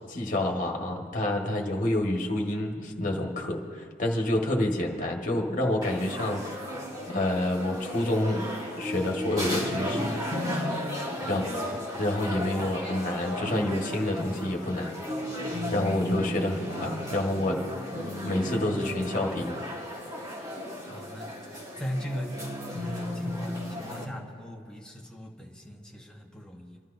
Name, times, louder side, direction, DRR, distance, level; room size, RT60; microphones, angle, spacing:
voice 1, 0.1-6.6 7.1-8.5 8.8-10.1 11.3-14.9 15.7-17.6 17.9-18.0 18.2-19.7, left 1 dB, 45° left, 0 dB, 1.6 m, -28 dB
sound 1, 5.8-24.0, left 1 dB, 20° right, 1.8 m, -34 dB
voice 2, 11.1-11.5 12.3-12.9 20.9-22.4 22.7-26.8, equal, 5° left, -1 dB, 1.2 m, -39 dB
29.0 x 12.5 x 2.7 m, 2.2 s
head